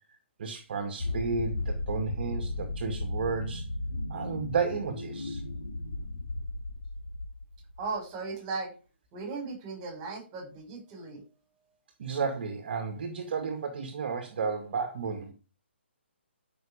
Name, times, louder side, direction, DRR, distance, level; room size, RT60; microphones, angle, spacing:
voice 1, 0.4-3.7 4.1-5.4 12.0-15.3, right 5 dB, 50° right, 5 dB, 2.2 m, -32 dB
sound 1, 1.0-7.8, left 2 dB, 75° left, 4.0 m, -35 dB
voice 2, 7.8-8.7 9.1-11.2, right 4 dB, 25° right, 4 dB, 6.3 m, -37 dB
14.0 x 6.4 x 5.1 m, 0.35 s
hypercardioid pair, 145°, 7 cm